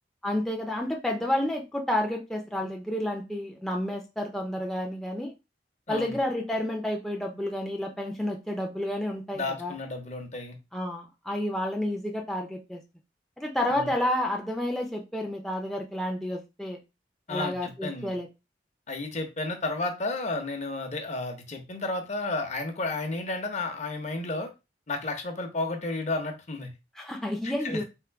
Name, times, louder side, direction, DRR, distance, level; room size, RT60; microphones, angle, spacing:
voice 1, 0.2-5.3 5.9-9.8 10.7-12.8 13.4-16.8 17.3-18.3 27.0-27.8, left 1 dB, ahead, 0 dB, 0.5 m, -30 dB
voice 2, 5.9-6.2 9.3-10.6 13.7-13.9 17.3-18.1 18.9-24.5 24.9-26.7 27.4-27.8, left 2 dB, 40° left, 5 dB, 0.9 m, -32 dB
3.7 x 2.7 x 4.5 m, 0.26 s
head